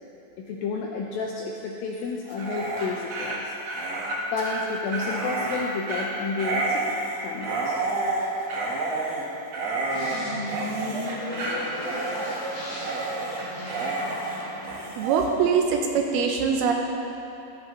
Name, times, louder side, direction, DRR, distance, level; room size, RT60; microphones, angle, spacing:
voice 1, 0.4-3.5 4.3-6.9 7.2-7.8, left 4 dB, 80° left, 0 dB, 2.1 m, -31 dB
Dog, 2.3-15.3, right 2 dB, 55° right, 2.1 m, -30 dB
sound 1, 9.9-14.9, equal, 35° left, 1.6 m, -34 dB
voice 2, 15.0-16.7, right 6 dB, 75° right, 2 dB, 2.4 m, -23 dB
15.5 x 13.5 x 3.2 m, 3.0 s
omnidirectional pair, 4.9 m